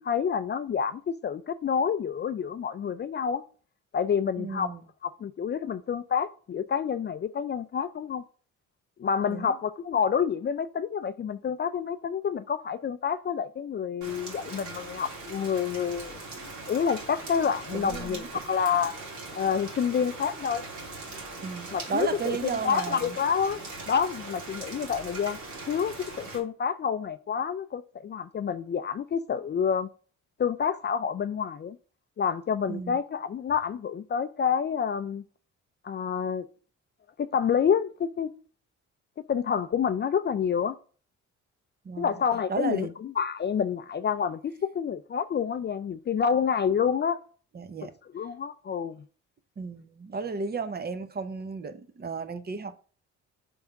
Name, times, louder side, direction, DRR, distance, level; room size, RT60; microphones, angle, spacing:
voice 1, 0.0-3.4 3.9-4.7 5.0-8.2 9.0-16.2 16.7-18.9 19.3-20.6 21.7-23.6 23.9-25.4 25.7-29.9 30.4-31.8 32.2-35.2 35.8-36.5 37.2-38.3 39.3-40.8 42.0-47.2 48.1-49.0, left 7 dB, 35° left, 0.4 m, -28 dB
voice 2, 4.4-4.8 9.3-9.6 17.7-18.4 21.4-23.2 32.7-33.0 41.8-42.2 42.5-42.9 47.5-47.9 49.6-52.8, right 5 dB, 30° right, 0.8 m, -34 dB
Rain, 14.0-26.4, right 3 dB, 75° right, 2.7 m, -40 dB
5.4 x 3.5 x 5.7 m
cardioid pair, 90°, 30 cm